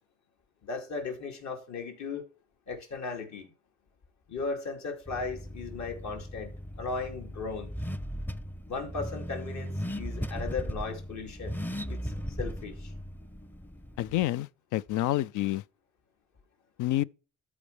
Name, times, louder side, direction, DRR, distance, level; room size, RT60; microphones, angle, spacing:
voice 1, 0.6-2.3 2.7-3.5 4.3-7.7 8.7-11.6 11.9-12.9, left 4 dB, 65° left, 2.7 m, -37 dB
Car / Accelerating revving vroom, 5.1-14.2, equal, 5° left, 0.5 m, -37 dB
voice 2, 14.0-15.6 16.8-17.0, left 15 dB, 80° left, 0.5 m, -28 dB
13.5 x 4.8 x 3.3 m
cardioid pair, 90°, 30 cm